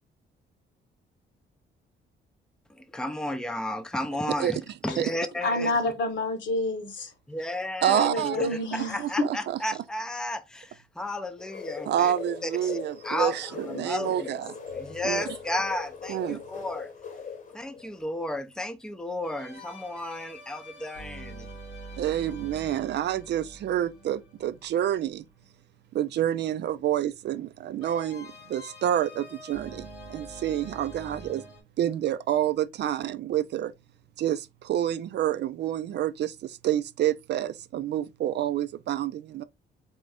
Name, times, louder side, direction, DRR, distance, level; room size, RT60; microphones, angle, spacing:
voice 1, 2.8-4.6 4.8-5.7 7.3-12.1 12.4-12.8 13.0-14.3 14.8-16.9 17.5-21.5, left 1 dB, 5° left, 0.6 m, -33 dB
voice 2, 5.4-7.1 7.9-9.0, left 2 dB, 65° left, 1.2 m, -28 dB
voice 3, 7.8-8.5 9.0-9.8 11.9-14.5 15.0-15.2 16.1-16.4 22.0-25.2 25.9-31.4 31.8-33.7 34.2-39.4, right 11 dB, 60° right, 0.4 m, -28 dB
sound 1, 11.4-18.0, left 6 dB, 40° left, 1.0 m, -39 dB
sound 2, 14.7-16.7 19.2-25.2 27.8-31.6, right 1 dB, 90° left, 2.7 m, -46 dB
4.3 x 2.5 x 3.3 m
cardioid pair, 90°, 20 cm